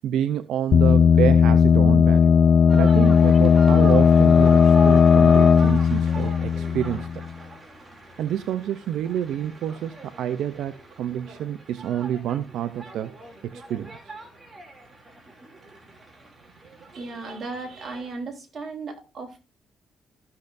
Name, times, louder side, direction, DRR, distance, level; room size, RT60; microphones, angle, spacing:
voice 1, 0.0-2.3 2.7-7.2 8.2-13.1 13.4-14.1, right 10 dB, 80° right, 0.5 m, -28 dB
sound 1, 0.7-7.3, left 6 dB, 50° left, 0.4 m, -16 dB
sound 2, 2.7-18.2, right 2 dB, 25° right, 2.7 m, -42 dB
voice 2, 16.9-19.4, right 3 dB, 45° right, 3.5 m, -35 dB
15.5 x 6.6 x 2.6 m
cardioid pair, 90°, 0 cm